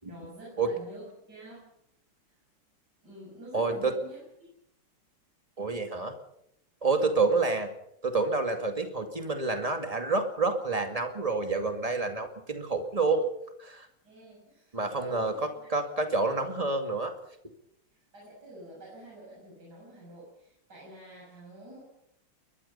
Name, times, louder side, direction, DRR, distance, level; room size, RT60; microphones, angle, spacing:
voice 1, 0.0-1.8 2.3-2.4 3.0-4.5 7.1-7.5 14.0-15.7 17.9-21.8, right 1 dB, 45° right, -5 dB, 7.4 m, -47 dB
voice 2, 3.5-3.9 5.6-6.1 6.8-7.7 8.0-13.3 13.6-13.9 14.7-17.1, right 3 dB, 15° right, 5 dB, 2.2 m, -28 dB
22.5 x 21.5 x 5.6 m, 0.76 s
omnidirectional pair, 2.4 m